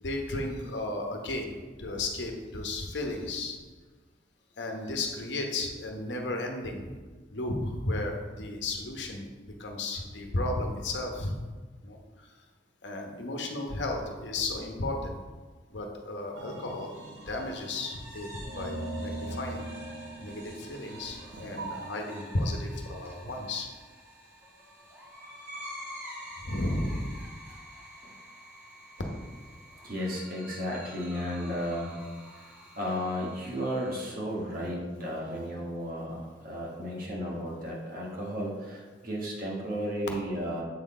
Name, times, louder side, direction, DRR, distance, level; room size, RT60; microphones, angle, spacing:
voice 1, 0.0-1.5 1.8-3.6 4.6-6.9 7.3-9.2 9.6-11.4 11.8-12.0 12.8-15.1 15.7-16.9 17.2-19.7 20.2-23.7 26.4-27.1, left 2 dB, 75° left, 2 dB, 1.0 m, -34 dB
sound 1, 16.4-21.9, right 2 dB, 80° right, 0.8 m, -40 dB
sound 2, 16.8-34.1, equal, 15° right, 1.5 m, -48 dB
voice 2, 29.8-32.0 32.4-32.5 32.8-40.6, equal, 50° right, -3 dB, 1.6 m, -34 dB
7.6 x 4.2 x 4.2 m, 1.4 s
head